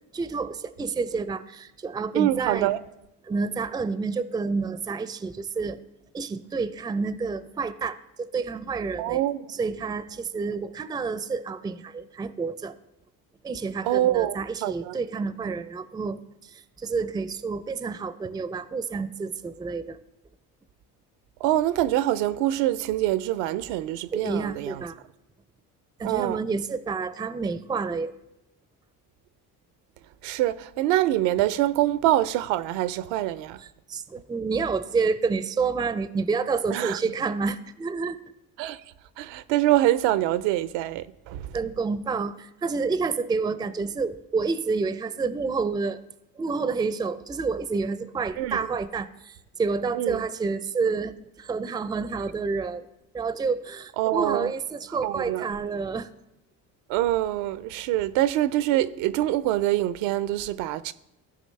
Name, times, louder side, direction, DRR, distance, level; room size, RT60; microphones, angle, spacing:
voice 1, 0.1-2.7 3.3-5.8 6.1-9.2 9.5-12.8 13.4-20.0 24.1-25.0 26.0-28.1 33.6-38.2 41.5-46.0 46.4-52.9 53.1-56.1, right 4 dB, 10° right, 0.4 m, -29 dB
voice 2, 2.1-2.8 9.0-9.5 13.8-15.0 21.4-24.8 26.0-26.4 30.2-33.6 36.7-37.0 38.6-38.8 39.2-41.6 48.4-48.7 49.9-50.2 54.0-54.5 55.0-55.5 56.9-60.9, right 14 dB, 70° right, 0.6 m, -25 dB
14.5 x 5.2 x 3.2 m
hypercardioid pair, 60°, 45 cm